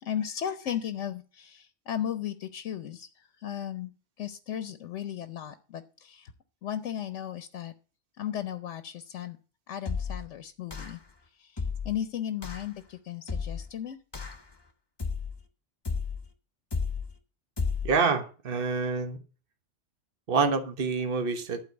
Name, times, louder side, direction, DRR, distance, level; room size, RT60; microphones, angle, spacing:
voice 1, 0.0-3.1 3.4-3.9 4.2-6.3 6.6-7.7 8.2-9.4 9.7-11.0 11.4-11.6 11.8-14.0, left 10 dB, 85° left, 1.1 m, -35 dB
sound 1, 9.8-10.3 10.7-11.1 11.6-12.0 12.4-12.7 13.3-13.7 14.1-14.5 15.0-15.4 15.8-16.3 16.7-17.1 17.6-18.0, left 5 dB, 25° left, 1.0 m, -33 dB
voice 2, 17.8-19.2 20.3-21.6, right 4 dB, 50° right, 1.3 m, -27 dB
11.5 x 4.5 x 8.0 m
omnidirectional pair, 1.2 m